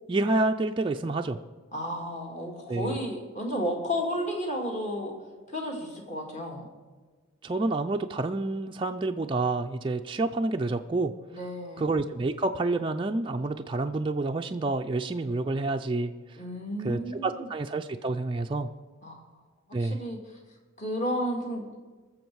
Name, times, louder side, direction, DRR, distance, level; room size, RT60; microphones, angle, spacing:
voice 1, 0.1-1.4 2.7-3.0 7.4-11.1 11.8-16.1 16.8-18.7 19.7-20.0, right 2 dB, 25° right, 4 dB, 0.4 m, -28 dB
voice 2, 1.7-5.1 5.5-6.7 11.3-11.9 16.4-17.5 19.0-19.2 19.8-20.2 20.8-21.8, equal, 35° left, 0 dB, 2.2 m, -32 dB
20.0 x 7.1 x 4.7 m, 1.4 s
head